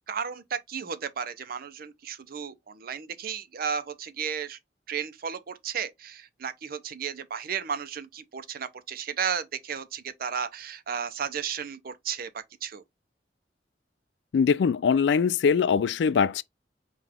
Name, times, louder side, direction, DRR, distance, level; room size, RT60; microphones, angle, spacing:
voice 1, 0.0-4.6 4.9-12.8, right 7 dB, 55° right, 0.5 m, -34 dB
voice 2, 14.3-16.4, left 6 dB, 75° left, 0.3 m, -22 dB
5.6 x 2.4 x 3.4 m
head